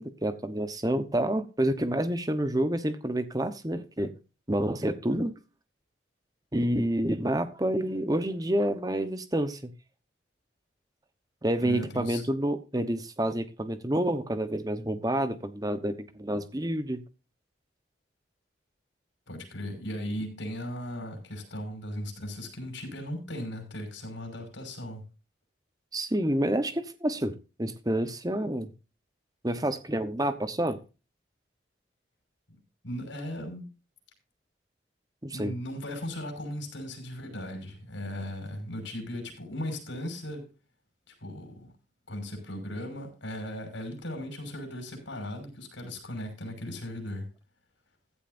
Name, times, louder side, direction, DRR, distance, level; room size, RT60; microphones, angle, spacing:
voice 1, 0.0-4.1 4.5-5.3 6.5-9.7 11.4-17.0 25.9-28.7 29.4-30.8 35.2-35.5, right 1 dB, 20° right, 11 dB, 1.0 m, -28 dB
voice 2, 11.6-12.2 19.3-25.0 32.8-33.7 35.3-40.5 41.1-41.7 42.1-47.3, equal, 80° left, 5 dB, 5.8 m, -37 dB
15.5 x 11.0 x 2.6 m, 0.32 s
head